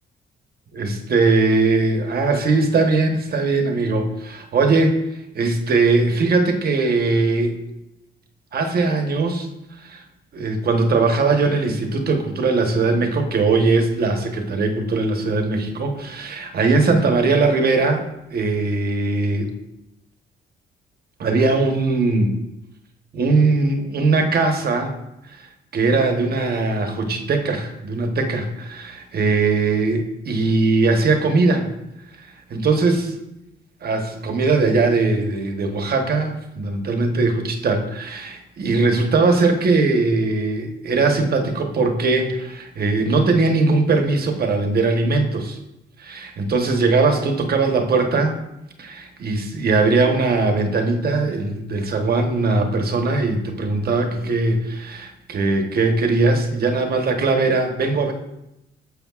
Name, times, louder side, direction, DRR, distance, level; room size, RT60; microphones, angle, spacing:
voice 1, 0.7-4.9 5.3-7.6 8.5-9.5 9.8-10.0 10.3-18.0 18.3-19.5 21.2-22.3 23.1-25.0 25.3-25.4 25.7-31.7 32.5-33.2 33.8-45.6 46.0-48.4 48.8-58.1, right 3 dB, 50° right, 4 dB, 1.1 m, -20 dB
9.4 x 6.7 x 2.4 m, 0.88 s
cardioid pair, 90°, 20 cm